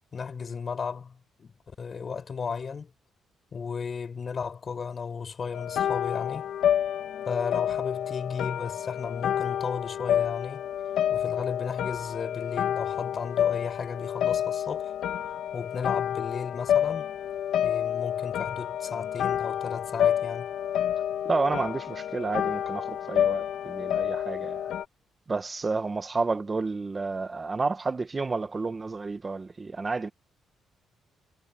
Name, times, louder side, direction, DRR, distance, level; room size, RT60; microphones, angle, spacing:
voice 1, 0.1-2.9 3.5-6.5 7.3-10.7 11.1-14.9 15.5-17.1 17.6-20.5, left 5 dB, 40° left, 4.6 m, -34 dB
sound 1, 5.5-24.8, left 10 dB, 75° left, 2.0 m, -29 dB
voice 2, 21.2-24.7 25.3-30.1, right 3 dB, 30° right, 1.6 m, -30 dB
cardioid pair, 90°, 0 cm